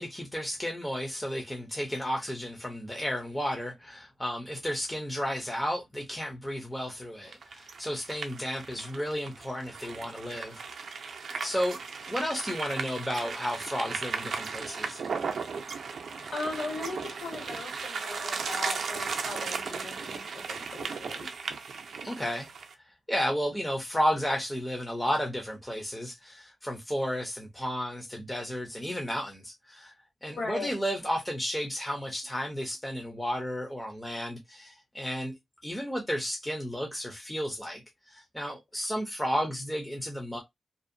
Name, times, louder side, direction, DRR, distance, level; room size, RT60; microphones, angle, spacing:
voice 1, 0.0-10.6 11.4-11.8 12.1-15.0 22.0-22.5 23.1-29.9 30.2-35.3 35.6-37.8 38.1-40.4, equal, 5° left, 0.5 m, -33 dB
sound 1, 7.3-22.7, right 5 dB, 65° right, 0.4 m, -36 dB
voice 2, 16.3-21.3 30.3-30.7, left 3 dB, 55° left, 1.3 m, -38 dB
2.5 x 2.1 x 2.5 m
wide cardioid pair, 170°, 0 cm